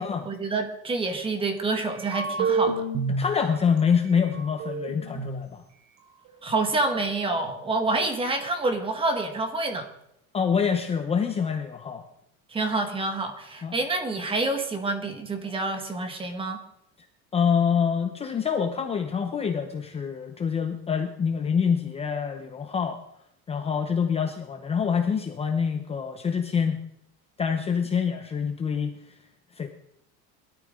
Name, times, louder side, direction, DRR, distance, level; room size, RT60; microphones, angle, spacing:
voice 1, 0.0-2.8 6.4-9.9 12.5-16.6, right 3 dB, 15° right, 6 dB, 1.7 m, -28 dB
sound 1, 1.9-3.2 3.8-3.9 4.1-5.4, right 4 dB, 65° right, 3.4 m, -28 dB
voice 2, 3.1-5.6 10.3-12.0 13.6-13.8 17.3-23.0 23.5-26.8 27.4-28.9 29.6-29.7, left 6 dB, 20° left, 5 dB, 0.8 m, -26 dB
21.5 x 13.0 x 3.8 m, 0.77 s
cardioid pair, 165°, 33 cm